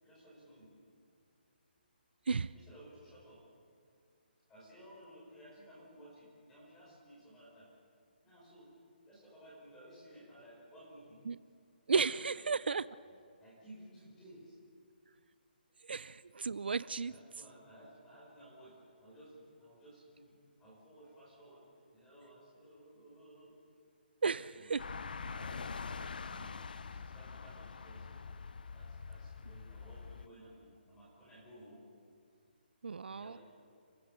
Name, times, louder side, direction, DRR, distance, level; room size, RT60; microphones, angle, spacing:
voice 1, 0.0-0.7 2.5-3.4 4.5-7.7 8.2-8.7 9.1-11.2 12.2-12.6 13.1-14.6 17.0-23.6 24.5-24.7 25.1-25.6 25.8-28.2 28.7-31.8 33.1-33.4, right 1 dB, 5° left, -6 dB, 5.3 m, -57 dB
voice 2, 11.9-12.9 15.9-17.1 24.2-24.8 32.8-33.4, right 5 dB, 70° right, 17 dB, 0.5 m, -33 dB
sound 1, 24.8-30.3, left 5 dB, 55° left, 0.7 m, -44 dB
29.5 x 16.5 x 6.8 m, 2.3 s
hypercardioid pair, 175°, 6 cm